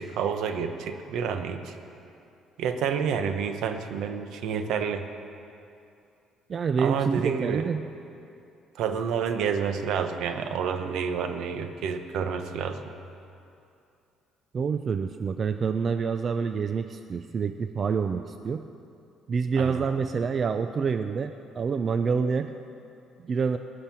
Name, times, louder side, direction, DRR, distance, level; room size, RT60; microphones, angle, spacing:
voice 1, 0.0-1.7 2.6-5.1 6.8-7.7 8.8-12.8 19.6-19.9, right 6 dB, 75° right, 7 dB, 1.0 m, -29 dB
voice 2, 6.5-7.8 14.5-18.6 19.3-22.5 23.2-23.6, right 5 dB, 45° right, 9 dB, 0.5 m, -27 dB
17.5 x 6.6 x 9.1 m, 2.6 s
cardioid pair, 90°, 0 cm